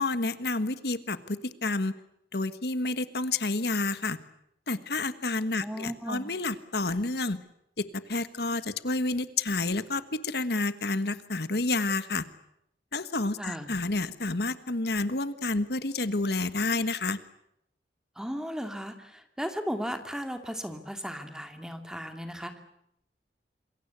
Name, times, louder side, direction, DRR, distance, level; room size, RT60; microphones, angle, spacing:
voice 1, 0.0-1.9 2.3-4.2 4.7-7.4 7.8-12.3 12.9-17.2, left 3 dB, 60° left, 13 dB, 1.4 m, -29 dB
voice 2, 5.6-6.3 13.4-13.7 18.2-22.6, equal, 5° right, 7 dB, 2.5 m, -36 dB
27.5 x 22.5 x 8.2 m, 0.77 s
head